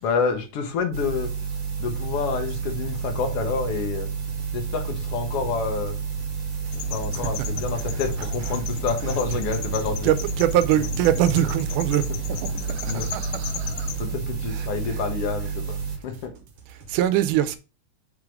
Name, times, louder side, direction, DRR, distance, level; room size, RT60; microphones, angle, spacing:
voice 1, 0.0-1.3 1.8-4.1 4.5-6.0 6.8-10.2 10.7-11.1 12.0-12.6 12.9-13.1 14.0-16.3, left 5 dB, 60° left, 1.7 m, -29 dB
sound 1, 0.9-16.0, right 6 dB, 40° right, 1.1 m, -30 dB
sound 2, 2.6-17.0, right 4 dB, 65° right, 1.4 m, -49 dB
sound 3, 6.7-14.0, left 6 dB, 85° left, 2.2 m, -35 dB
voice 2, 10.0-13.9 14.5-14.7 16.9-17.6, right 12 dB, 80° right, 2.1 m, -23 dB
6.1 x 3.8 x 4.9 m
omnidirectional pair, 3.7 m